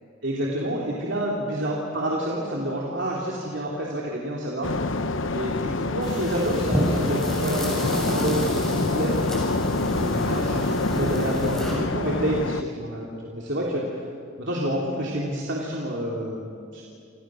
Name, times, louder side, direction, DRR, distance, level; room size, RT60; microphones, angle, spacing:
voice 1, 0.2-4.7 5.3-9.2 9.8-14.0 14.4-16.8, right 1 dB, 60° right, -3 dB, 3.4 m, -28 dB
sound 1, 4.6-12.6, left 2 dB, 70° left, 1.1 m, -26 dB
sound 2, 6.0-11.7, equal, ahead, 6.6 m, -30 dB
29.5 x 27.5 x 6.5 m, 2.4 s
head